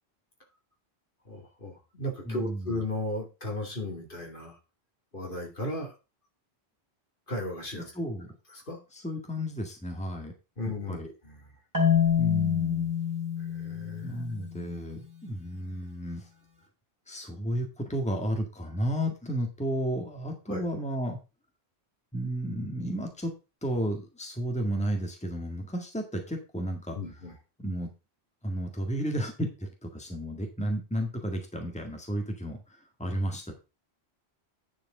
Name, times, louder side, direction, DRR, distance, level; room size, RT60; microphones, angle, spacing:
voice 1, 1.3-4.6 5.1-5.9 7.3-7.9 8.5-8.8 10.6-11.4 13.4-14.2 20.5-20.7 26.9-27.3, left 1 dB, 55° left, 1 dB, 2.5 m, -35 dB
voice 2, 2.3-2.8 7.7-8.4 8.9-10.3 10.9-11.1 12.2-12.9 14.0-16.3 17.1-21.2 22.1-23.3 23.6-27.0 27.6-27.9 28.4-33.5, equal, 5° left, 3 dB, 1.8 m, -33 dB
Marimba xylophone, 11.7-14.7, left 8 dB, 15° right, 3.1 m, -27 dB
9.7 x 5.2 x 4.9 m, 0.29 s
omnidirectional pair, 1.1 m